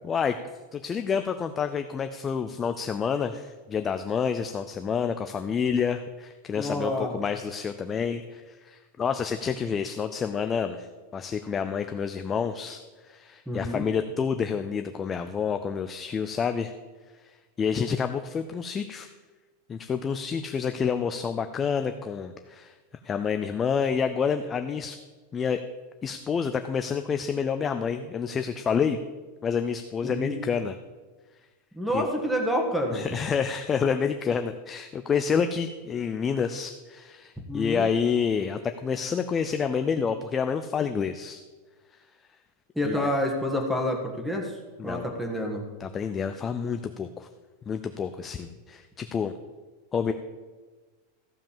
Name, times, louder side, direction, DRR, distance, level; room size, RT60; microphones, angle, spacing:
voice 1, 0.0-0.4 0.7-10.9 11.1-16.7 17.6-19.1 19.7-22.7 23.0-25.0 25.3-25.6 26.0-29.0 29.4-30.7 31.9-32.0 32.9-41.4 42.8-43.1 44.8-45.1 45.8-47.3 47.7-49.3 49.9-50.1, left 6 dB, 15° left, 8 dB, 0.4 m, -28 dB
voice 2, 6.5-7.2 13.5-13.8 30.0-30.4 31.7-33.0 37.5-37.9 42.7-45.6, left 1 dB, ahead, 2 dB, 1.4 m, -28 dB
14.5 x 5.3 x 7.3 m, 1.3 s
supercardioid pair, 170°, 0 cm